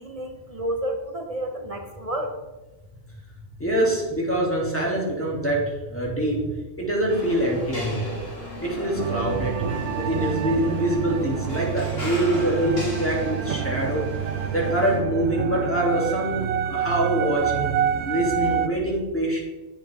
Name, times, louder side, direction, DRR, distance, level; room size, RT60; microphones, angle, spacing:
voice 1, 0.0-2.3, right 1 dB, 35° right, 4 dB, 0.9 m, -30 dB
voice 2, 3.6-6.5 6.8-8.2 8.6-9.6 10.0-14.1 14.5-17.7 18.0-19.4, right 1 dB, 10° left, -4 dB, 2.6 m, -24 dB
sound 1, 7.1-15.0, equal, 65° left, 3.6 m, -36 dB
sound 2, 9.0-18.7, right 9 dB, 85° right, 0.9 m, -28 dB
11.0 x 8.2 x 3.5 m, 1.1 s
omnidirectional pair, 1.1 m